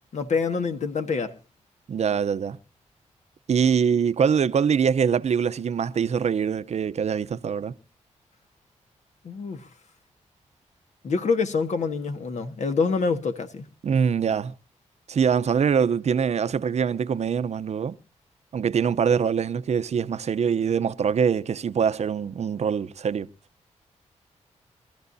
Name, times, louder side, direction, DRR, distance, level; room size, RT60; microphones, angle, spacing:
voice 1, 0.1-1.3 9.2-9.7 11.0-13.7, left 4 dB, 70° left, 1.6 m, -26 dB
voice 2, 1.9-2.6 3.5-7.7 13.8-14.5 15.1-18.0 18.5-23.3, right 7 dB, 60° right, 0.7 m, -23 dB
24.0 x 14.0 x 2.7 m
cardioid pair, 85°, 13 cm